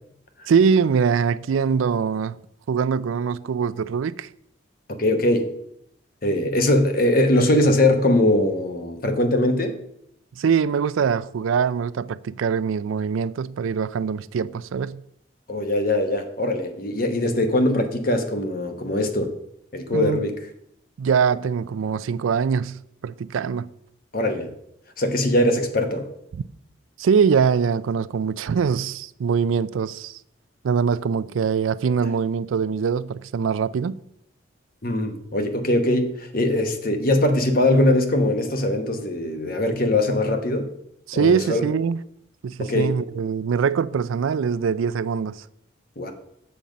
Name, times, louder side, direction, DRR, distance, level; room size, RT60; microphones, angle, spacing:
voice 1, 0.5-2.4 2.7-4.3 10.4-15.0 19.9-20.2 21.0-23.7 26.3-26.4 27.0-30.2 30.6-34.0 41.1-42.0 42.4-45.4, right 6 dB, 80° right, 0.4 m, -23 dB
voice 2, 5.0-5.5 6.2-9.8 15.5-19.3 19.7-20.4 24.1-24.5 25.0-26.1 34.8-40.7 41.1-41.6 42.6-42.9 46.0-46.1, left 1 dB, 45° left, 1.1 m, -21 dB
7.1 x 5.3 x 7.3 m
head